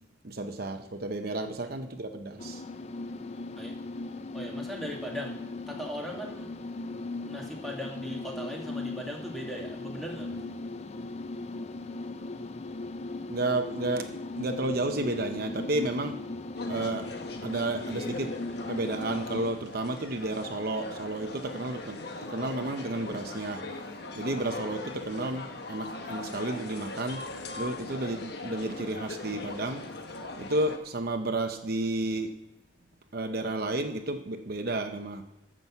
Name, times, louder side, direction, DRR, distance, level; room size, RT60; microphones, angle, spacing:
voice 1, 0.2-2.6 13.3-14.1 14.4-16.2 16.7-17.1 17.4-18.3 18.7-23.6 24.1-27.3 27.5-29.9 30.4-32.3 33.1-35.2, right 2 dB, 55° right, 6 dB, 0.8 m, -32 dB
voice 2, 1.3-1.8 3.5-3.8 4.3-6.6 6.9-10.4, equal, ahead, -1 dB, 1.8 m, -39 dB
sound 1, 2.4-19.5, left 2 dB, 35° left, 0.5 m, -38 dB
sound 2, 16.6-30.8, left 2 dB, 55° left, 1.2 m, -40 dB
13.5 x 6.0 x 7.1 m, 1.0 s
head